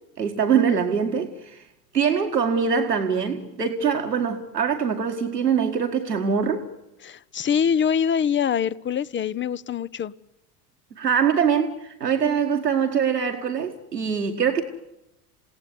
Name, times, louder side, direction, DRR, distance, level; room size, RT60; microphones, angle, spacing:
voice 1, 0.2-1.6 1.9-6.7 11.0-14.6, right 7 dB, 90° right, 1.9 m, -23 dB
voice 2, 7.0-10.1, left 7 dB, 25° left, 0.9 m, -24 dB
29.0 x 17.5 x 9.7 m
figure-of-eight pair, 75°, 47 cm